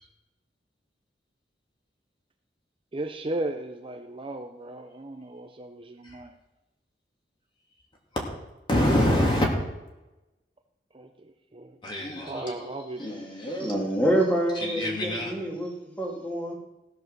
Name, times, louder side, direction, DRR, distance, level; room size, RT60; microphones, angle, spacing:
voice 1, 2.9-6.3 10.9-11.8 12.2-13.0, right 2 dB, 30° right, 6 dB, 0.7 m, -36 dB
voice 2, 8.7-9.5 11.8-12.7 13.0-13.8 14.6-15.3, left 1 dB, 30° left, -2 dB, 3.0 m, -26 dB
voice 3, 13.6-16.5, right 1 dB, 10° left, -2 dB, 2.6 m, -27 dB
15.5 x 6.8 x 6.7 m, 1.0 s
head